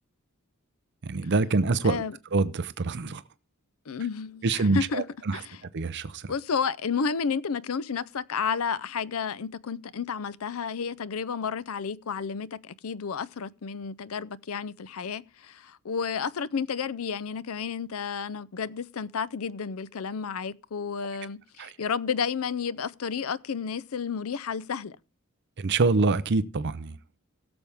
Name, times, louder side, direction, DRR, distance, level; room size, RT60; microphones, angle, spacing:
voice 1, 1.0-2.0 2.3-3.2 4.4-5.4 5.7-6.3 21.6-21.8 25.6-27.0, right 3 dB, 55° right, 0.6 m, -25 dB
voice 2, 3.9-5.0 5.3-5.5 6.3-25.0, left 6 dB, 75° left, 0.5 m, -31 dB
18.0 x 7.1 x 3.5 m
head